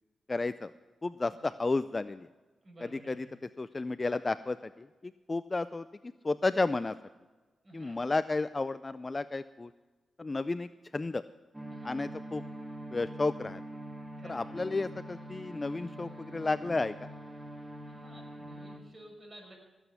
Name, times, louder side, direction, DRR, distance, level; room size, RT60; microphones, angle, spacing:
voice 1, 0.3-0.7 1.0-2.3 2.8-7.0 7.7-9.7 10.2-11.2 11.8-12.4 12.9-13.6 14.2-17.1, left 3 dB, 30° left, 14 dB, 0.4 m, -32 dB
voice 2, 2.6-3.3 7.6-8.0 11.7-12.0 14.2-14.6 17.9-19.5, right 1 dB, 35° right, 1 dB, 6.1 m, -53 dB
sound 1, 11.5-18.8, right 1 dB, 15° right, 1.5 m, -44 dB
18.0 x 8.1 x 7.0 m, 1.2 s
cardioid pair, 70°, 0 cm